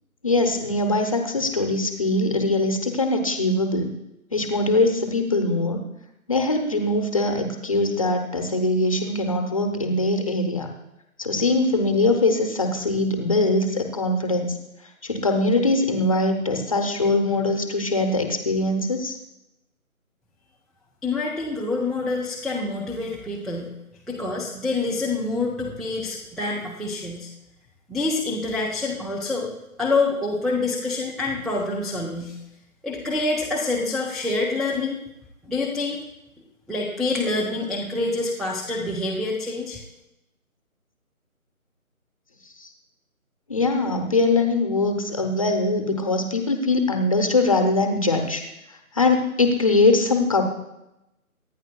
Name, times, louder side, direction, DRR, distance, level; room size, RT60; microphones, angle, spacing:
voice 1, 0.2-3.9 4.3-5.8 6.3-10.7 11.2-14.6 15.0-19.2 42.6-42.7 43.5-48.4 48.9-50.4, left 2 dB, 25° left, 5 dB, 0.9 m, -22 dB
voice 2, 21.0-23.7 24.1-27.3 27.9-29.5 29.8-32.3 32.8-35.0 35.4-36.0 36.7-39.8, left 3 dB, ahead, -3 dB, 0.5 m, -26 dB
24.0 x 10.0 x 2.3 m, 0.90 s
figure-of-eight pair, 155°, 43 cm